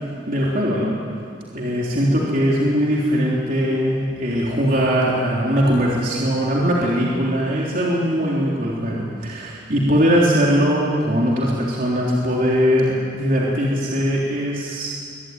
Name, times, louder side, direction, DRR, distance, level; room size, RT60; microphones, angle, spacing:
voice 1, 0.3-1.0 1.5-14.9, equal, 45° right, -4 dB, 3.6 m, -20 dB
23.5 x 22.5 x 9.7 m, 2.2 s
head